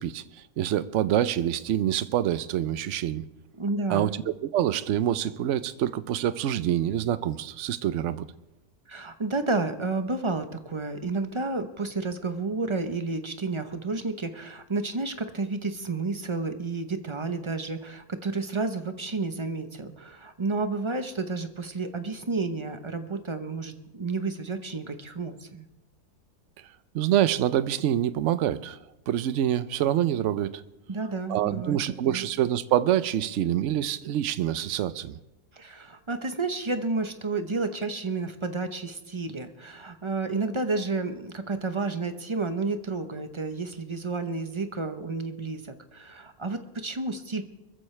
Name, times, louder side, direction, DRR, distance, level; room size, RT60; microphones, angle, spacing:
voice 1, 0.0-3.3 3.9-8.3 26.9-28.8 29.1-30.6 31.3-35.2, right 11 dB, 65° right, 0.8 m, -26 dB
voice 2, 3.6-4.2 8.9-25.7 30.9-31.8 32.0-32.2 35.5-47.4, right 3 dB, 25° right, 0.6 m, -31 dB
23.0 x 14.0 x 3.3 m
omnidirectional pair, 1.7 m